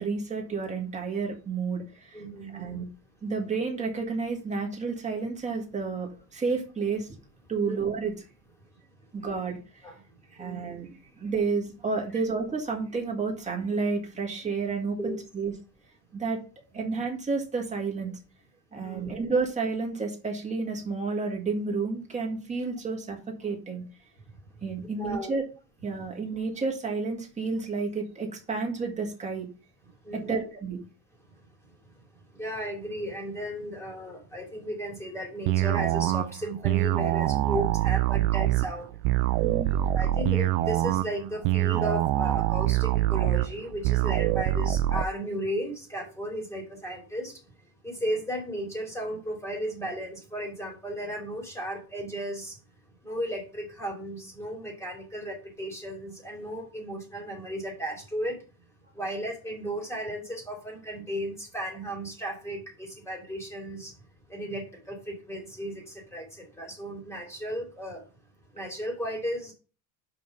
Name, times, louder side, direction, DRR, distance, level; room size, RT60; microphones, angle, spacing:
voice 1, 0.0-2.2 2.5-2.9 3.2-7.1 7.5-8.1 9.1-10.0 10.3-15.5 16.1-16.4 16.7-18.2 18.7-23.8 24.6-25.4 25.8-29.5 30.1-30.8 39.4-39.7, right 4 dB, 15° right, 0 dB, 1.9 m, -31 dB
voice 2, 2.1-2.9 7.6-7.8 9.8-10.0 10.4-10.7 15.0-15.2 16.7-16.8 18.8-19.1 25.0-25.3 30.0-30.4 32.3-39.0 39.3-47.4 47.8-52.6 53.0-58.4 58.9-63.9 64.3-68.0 68.5-69.5, equal, 5° left, 0 dB, 2.9 m, -35 dB
sound 1, 35.5-45.1, right 15 dB, 65° right, 0.6 m, -25 dB
5.8 x 5.3 x 5.3 m, 0.35 s
cardioid pair, 155°, 47 cm